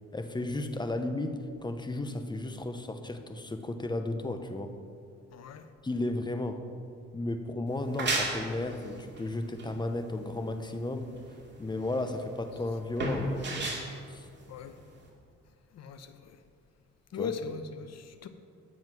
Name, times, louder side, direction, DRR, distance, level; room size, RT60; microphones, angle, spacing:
voice 1, 0.1-4.8 5.8-6.7 7.1-11.2 11.6-13.7 14.1-14.3 17.1-17.3, left 2 dB, 15° left, 7 dB, 0.9 m, -34 dB
voice 2, 5.3-5.6 14.5-14.8 15.7-16.4 17.1-18.3, left 6 dB, 60° left, 9 dB, 0.9 m, -39 dB
sound 1, 7.7-15.1, right 2 dB, 35° right, 2.3 m, -35 dB
9.5 x 7.3 x 6.0 m, 2.2 s
cardioid pair, 90°, 30 cm